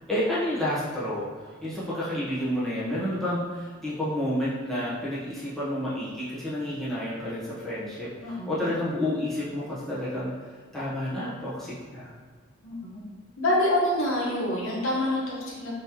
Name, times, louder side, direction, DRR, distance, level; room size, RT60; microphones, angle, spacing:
voice 1, 0.1-10.3 10.7-12.1, left 1 dB, ahead, -11 dB, 0.9 m, -30 dB
voice 2, 8.2-8.7 12.6-13.0 13.4-15.7, left 1 dB, 70° left, -5 dB, 0.9 m, -26 dB
3.5 x 3.1 x 2.9 m, 1.5 s
head